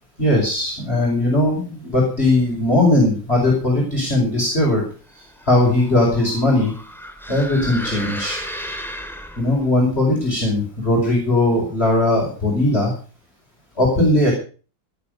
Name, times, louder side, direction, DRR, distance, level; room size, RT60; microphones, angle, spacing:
voice 1, 0.2-4.8 5.5-6.7 7.3-8.4 9.4-12.9 13.8-14.3, left 1 dB, 30° left, -3 dB, 5.7 m, -18 dB
sound 1, 5.2-9.7, equal, ahead, 2.3 m, -34 dB
18.5 x 7.9 x 6.6 m, 0.38 s
omnidirectional pair, 2.0 m